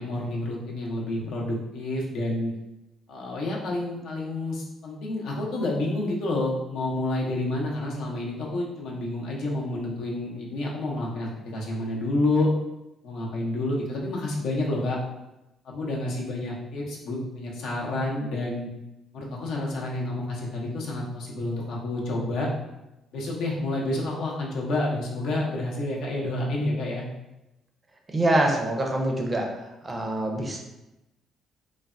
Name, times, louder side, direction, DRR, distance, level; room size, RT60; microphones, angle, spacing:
voice 1, 0.0-2.5 3.1-12.5 13.0-15.0 15.6-18.7 19.1-22.5 23.1-27.1, left 2 dB, 75° left, -2 dB, 0.6 m, -29 dB
voice 2, 28.1-29.5 29.8-30.6, right 1 dB, 25° right, 1 dB, 0.4 m, -25 dB
3.2 x 2.1 x 2.4 m, 0.94 s
cardioid pair, 110°, 0 cm